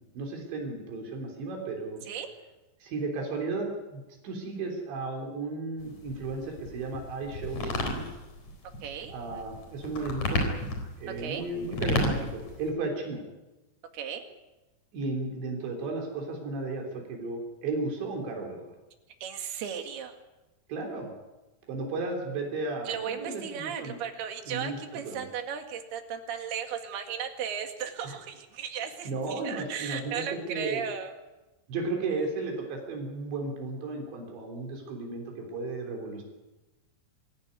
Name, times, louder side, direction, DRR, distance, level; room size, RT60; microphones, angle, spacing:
voice 1, 0.0-2.0 2.8-8.1 9.1-10.4 11.0-13.2 14.9-18.7 20.7-21.1 21.7-24.0 24.5-25.2 28.0-28.1 29.1-30.9 31.7-36.2, right 3 dB, 80° right, 1 dB, 5.7 m, -34 dB
sound 1, 5.8-12.7, left 1 dB, 40° left, 5.1 m, -33 dB
voice 2, 8.8-9.4 11.2-11.5 13.9-14.2 19.2-20.2 22.9-31.1, right 8 dB, 65° right, 5 dB, 3.9 m, -36 dB
26.0 x 15.5 x 9.6 m, 1.1 s
omnidirectional pair, 5.0 m